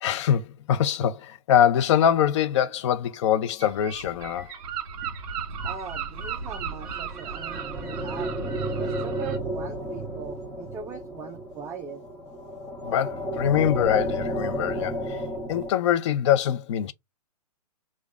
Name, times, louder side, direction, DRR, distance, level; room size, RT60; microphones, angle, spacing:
voice 1, 0.0-4.5 12.8-15.2 15.5-16.9, left 10 dB, 45° left, 0.7 m, -23 dB
Gull seagull, 3.6-9.4, right 6 dB, 45° right, 1.8 m, -36 dB
voice 2, 5.6-8.3 8.8-12.0, right 7 dB, 15° right, 0.4 m, -40 dB
sound 1, 6.9-15.7, equal, 5° left, 1.3 m, -32 dB
4.9 x 2.3 x 4.0 m
hypercardioid pair, 125°, 20 cm